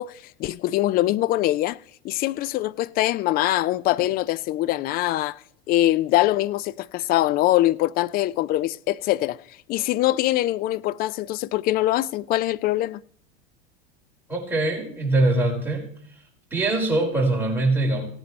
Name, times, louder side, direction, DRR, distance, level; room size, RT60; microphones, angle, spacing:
voice 1, 0.0-1.8 2.0-5.4 5.7-9.4 9.7-13.0, left 15 dB, 30° left, 0.4 m, -23 dB
voice 2, 14.3-15.9 16.5-18.1, right 2 dB, 5° right, 4.8 m, -22 dB
17.5 x 9.2 x 3.2 m
hypercardioid pair, 95°, 33 cm